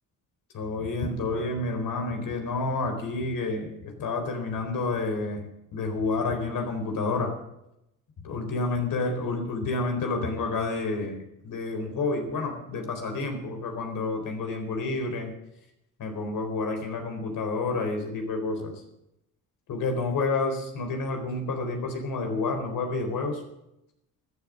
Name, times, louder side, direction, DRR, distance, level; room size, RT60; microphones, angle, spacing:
voice 1, 0.5-7.4 8.2-15.3 16.0-18.8 19.7-23.4, left 3 dB, 70° left, 5 dB, 4.2 m, -29 dB
14.0 x 11.0 x 7.5 m, 0.85 s
cardioid pair, 80°, 35 cm